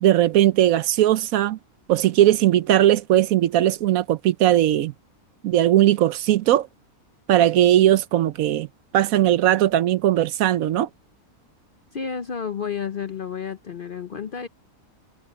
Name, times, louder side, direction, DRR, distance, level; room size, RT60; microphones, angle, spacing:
voice 1, 0.0-1.6 1.9-4.9 5.4-6.7 7.3-8.7 8.9-10.9, right 12 dB, 75° right, 1.0 m, -18 dB
voice 2, 11.9-14.5, left 7 dB, 50° left, 0.7 m, -31 dB
omnidirectional pair, 1.5 m